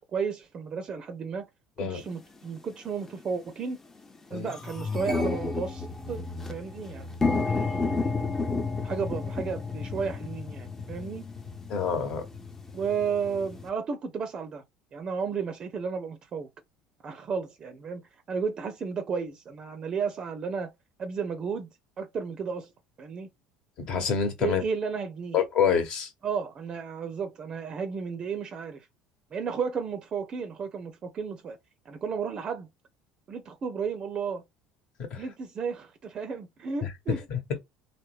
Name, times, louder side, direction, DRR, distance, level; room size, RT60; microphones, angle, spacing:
voice 1, 0.1-1.5 1.8-3.8 4.3-6.2 6.5-7.1 7.4-8.0 8.8-11.2 12.7-14.6 14.9-16.5 17.0-18.0 18.3-20.7 21.0-21.7 22.0-22.7 23.0-23.3 24.4-25.4 26.2-28.9 29.3-31.6 31.9-32.7 33.3-34.4 35.1-37.3, right 5 dB, 40° right, 0.5 m, -33 dB
sound 1, 2.1-2.2 3.0-3.2 3.6-3.7 4.0-13.7, left 4 dB, 20° left, 0.7 m, -32 dB
voice 2, 11.7-12.2 23.8-24.6 25.3-26.1 35.0-35.2 36.8-36.9 37.3-37.4, left 7 dB, 50° left, 1.1 m, -27 dB
3.3 x 2.2 x 3.0 m
figure-of-eight pair, 65°, 2 cm